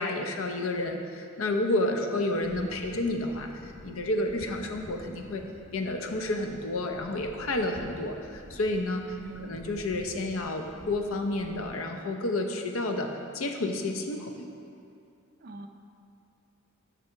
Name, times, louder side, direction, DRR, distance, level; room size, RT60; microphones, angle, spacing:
voice 1, 0.0-5.4 5.7-14.5, left 2 dB, 80° left, 4 dB, 0.7 m, -30 dB
sound 1, 2.4-11.8, right 1 dB, 40° left, 1.7 m, -49 dB
voice 2, 9.2-9.6 15.4-15.7, right 3 dB, 45° right, 5 dB, 0.5 m, -42 dB
6.7 x 6.1 x 4.5 m, 2.5 s
head